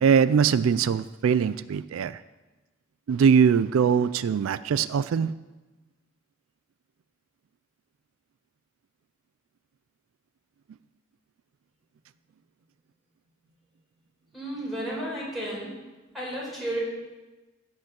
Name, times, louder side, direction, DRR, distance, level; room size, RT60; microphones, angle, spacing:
voice 1, 0.0-2.2 3.1-5.3, right 7 dB, 85° right, 16 dB, 0.4 m, -22 dB
voice 2, 14.3-15.7 16.1-16.8, right 1 dB, ahead, -6 dB, 5.1 m, -32 dB
16.0 x 5.4 x 7.0 m, 1.2 s
head